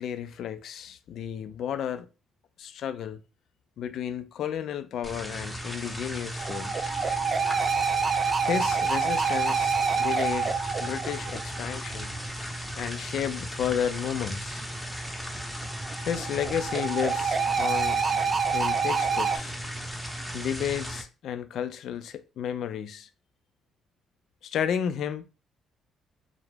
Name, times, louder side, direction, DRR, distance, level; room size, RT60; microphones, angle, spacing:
voice 1, 0.0-2.1 2.6-3.2 3.8-6.7 8.4-12.1 12.8-14.6 16.0-18.0 18.5-19.5 20.3-23.1 24.4-25.3, left 9 dB, 70° left, 0.3 m, -32 dB
sound 1, 5.0-21.0, equal, 5° left, 0.6 m, -36 dB
sound 2, 6.4-12.0 15.5-19.4, right 5 dB, 45° right, 0.3 m, -27 dB
2.3 x 2.0 x 3.2 m
supercardioid pair, 65°, 0 cm